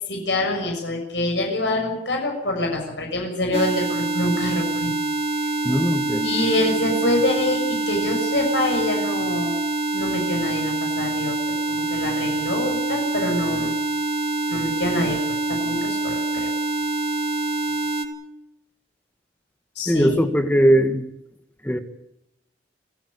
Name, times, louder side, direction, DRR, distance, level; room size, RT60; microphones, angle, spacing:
voice 1, 0.1-4.9 6.2-9.6 9.9-11.3 11.7-13.7 14.5-16.5 19.7-20.1, left 1 dB, 80° left, 2 dB, 6.8 m, -25 dB
sound 1, 3.5-18.1, right 3 dB, 35° right, 2.7 m, -25 dB
voice 2, 5.6-6.3 19.9-21.0 21.6-21.8, equal, 10° left, 8 dB, 1.7 m, -19 dB
28.5 x 14.5 x 8.3 m, 0.82 s
head